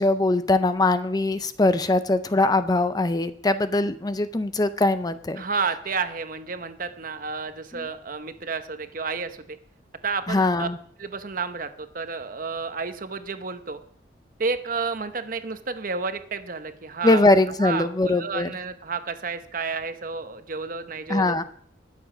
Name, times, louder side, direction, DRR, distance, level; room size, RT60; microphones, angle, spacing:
voice 1, 0.0-5.4 7.7-7.9 10.3-10.8 17.0-18.5 21.1-21.4, left 2 dB, 20° left, 12 dB, 0.5 m, -22 dB
voice 2, 5.4-9.6 10.0-10.7 11.0-13.8 14.4-17.3 17.6-21.4, right 4 dB, 50° right, 9 dB, 0.9 m, -31 dB
20.0 x 7.2 x 5.0 m, 0.62 s
head